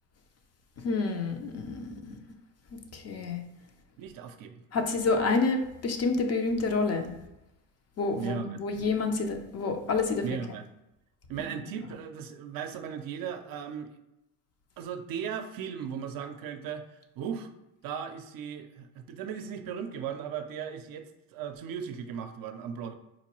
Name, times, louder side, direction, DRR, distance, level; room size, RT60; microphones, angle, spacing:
voice 1, 0.8-2.2 2.9-3.4 4.7-7.1 8.0-10.2, left 3 dB, 40° left, 5 dB, 0.5 m, -28 dB
voice 2, 4.0-4.6 8.2-8.6 10.2-10.7 11.3-14.0 14.8-16.9 17.2-17.5 17.8-22.9, right 7 dB, 60° right, 7 dB, 0.5 m, -37 dB
4.1 x 2.2 x 3.0 m, 0.93 s
supercardioid pair, 80°, 39 cm